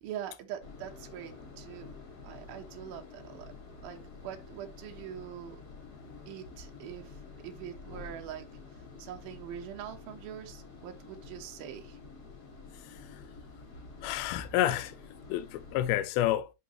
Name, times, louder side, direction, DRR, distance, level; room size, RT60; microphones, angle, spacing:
voice 1, 0.0-2.0 2.2-3.5 3.8-5.6 6.3-8.5 9.0-12.0, right 10 dB, 70° right, 2.9 m, -43 dB
sound 1, 0.6-15.9, left 4 dB, 35° left, 1.7 m, -49 dB
voice 2, 14.0-14.9 15.3-16.5, left 13 dB, 75° left, 2.5 m, -29 dB
11.0 x 4.0 x 3.2 m
omnidirectional pair, 4.6 m